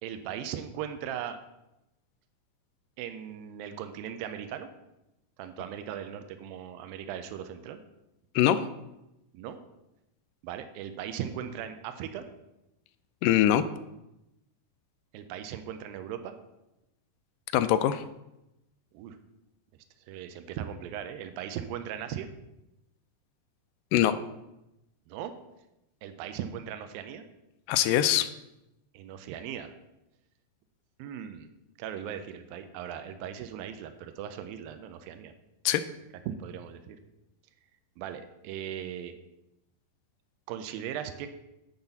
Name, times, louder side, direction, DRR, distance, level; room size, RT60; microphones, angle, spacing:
voice 1, 0.0-1.4 3.0-4.7 5.4-7.8 9.3-9.6 10.4-12.2 15.1-16.3 18.9-19.2 20.1-22.3 25.1-25.3 26.0-27.2 28.9-29.7 31.0-31.5 31.8-35.3 36.3-37.0 38.0-39.1 40.5-41.3, right 9 dB, 90° right, 8 dB, 2.5 m, -38 dB
voice 2, 8.3-8.7 13.2-13.7 17.5-18.0 23.9-24.2 27.7-28.3 35.7-35.9, left 11 dB, 80° left, 11 dB, 2.0 m, -23 dB
10.5 x 4.1 x 7.0 m, 0.92 s
omnidirectional pair, 4.1 m